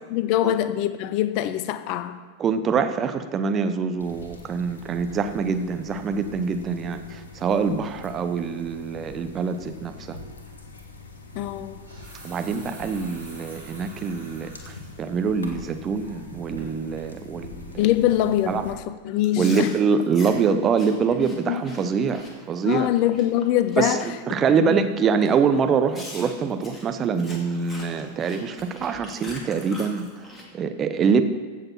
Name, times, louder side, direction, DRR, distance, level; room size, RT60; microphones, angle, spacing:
voice 1, 0.1-2.2 11.4-11.8 17.8-19.7 21.5-21.6 22.6-24.0 24.7-24.8, left 12 dB, 45° left, 12 dB, 0.6 m, -23 dB
voice 2, 2.4-10.2 12.2-14.5 15.0-17.8 18.5-18.6 19.4-22.9 23.8-31.2, right 5 dB, 25° right, 8 dB, 0.8 m, -24 dB
sound 1, 4.0-18.7, left 3 dB, 75° left, 1.4 m, -43 dB
sound 2, 10.5-10.6 11.6-14.9 15.4-15.5 16.0-16.3 16.6-16.7, right 1 dB, 80° right, 3.6 m, -47 dB
Chewing mastication, 19.2-24.1 24.4-24.7 25.2-25.3 25.9-30.4, left 1 dB, 20° left, 2.1 m, -43 dB
15.5 x 6.6 x 4.3 m, 1.5 s
figure-of-eight pair, 90°, 0 cm